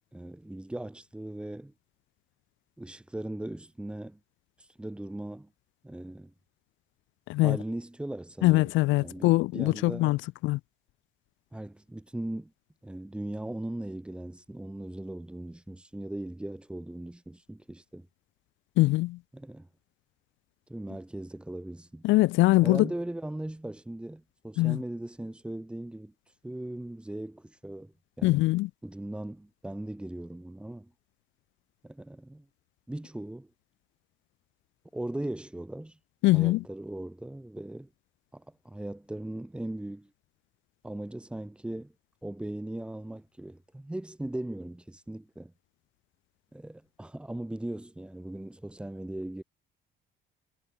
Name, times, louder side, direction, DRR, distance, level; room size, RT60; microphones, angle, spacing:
voice 1, 0.1-1.7 2.8-4.2 4.8-5.5 5.8-6.3 7.4-8.7 9.0-10.1 11.5-12.5 12.8-18.1 19.3-19.7 20.7-22.0 22.6-26.1 26.4-27.9 28.2-28.5 28.8-30.9 31.8-32.5 32.9-33.5 34.9-36.0 36.3-37.9 38.3-40.1 40.8-41.9 42.2-45.5 46.5-49.4, right 1 dB, 5° right, 4.1 m, -38 dB
voice 2, 8.4-10.6 18.8-19.2 22.0-22.9 24.6-24.8 28.2-28.7 36.2-36.6, left 19 dB, 80° left, 0.9 m, -23 dB
cardioid pair, 170°, 19 cm